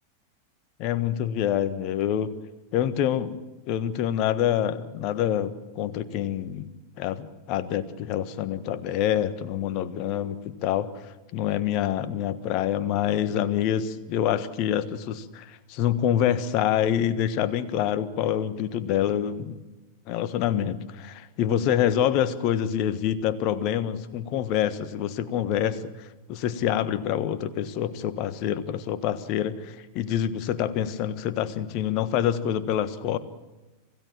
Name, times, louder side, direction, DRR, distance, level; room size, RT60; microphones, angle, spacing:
voice 1, 0.8-2.3 2.7-3.4 3.7-6.7 7.0-19.5 20.1-33.2, left 10 dB, 40° left, 13 dB, 1.4 m, -26 dB
26.5 x 16.5 x 7.4 m, 1.1 s
figure-of-eight pair, 90°, 0 cm